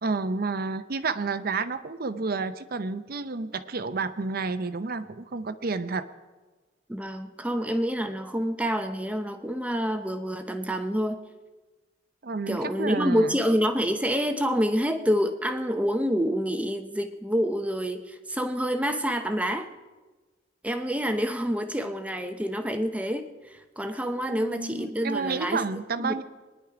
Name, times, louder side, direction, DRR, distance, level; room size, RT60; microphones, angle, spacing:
voice 1, 0.0-6.1 12.2-13.4 24.3-26.2, right 4 dB, 50° right, 12 dB, 0.6 m, -30 dB
voice 2, 6.9-11.2 12.5-19.7 20.6-25.6 26.0-26.2, equal, 5° right, 6 dB, 0.6 m, -27 dB
23.0 x 10.0 x 4.9 m, 1.3 s
head